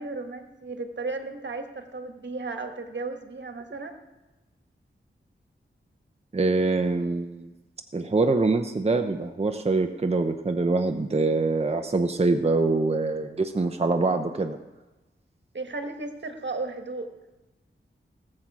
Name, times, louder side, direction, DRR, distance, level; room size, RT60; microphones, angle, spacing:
voice 1, 0.0-4.0 15.5-17.1, right 3 dB, 60° right, 6 dB, 1.5 m, -34 dB
voice 2, 6.3-7.5 7.9-14.6, right 3 dB, 30° right, 6 dB, 0.8 m, -24 dB
19.0 x 7.7 x 4.8 m, 1.1 s
wide cardioid pair, 60°, 21 cm